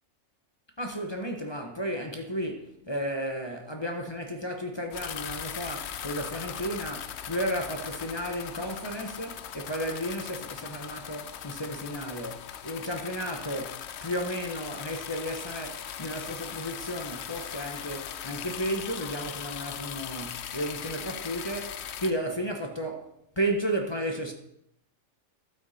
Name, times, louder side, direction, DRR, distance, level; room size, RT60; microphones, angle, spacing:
voice 1, 0.8-23.1 23.4-24.3, equal, 20° left, 1.1 m, -33 dB
sound 1, 4.9-22.1, left 9 dB, 60° left, 0.8 m, -39 dB
12.0 x 8.8 x 4.3 m
omnidirectional pair, 1.4 m